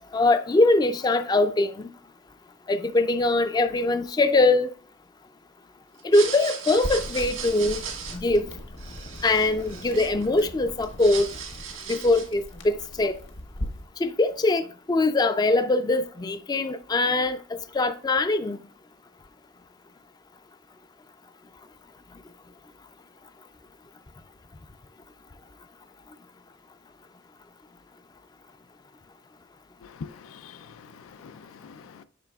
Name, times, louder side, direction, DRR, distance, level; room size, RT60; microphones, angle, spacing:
voice 1, 0.1-1.9 2.7-4.7 6.0-7.8 8.2-8.5 9.2-11.3 11.9-13.2 14.0-17.4 17.7-18.6, left 2 dB, 20° left, 0.3 m, -22 dB
sound 1, 6.0-10.5 10.8-12.4, right 7 dB, 85° right, 1.5 m, -37 dB
sound 2, 6.8-13.9, left 1 dB, 60° left, 1.2 m, -39 dB
voice 2, 29.8-32.0, left 5 dB, 90° left, 0.4 m, -44 dB
8.8 x 5.8 x 2.3 m
head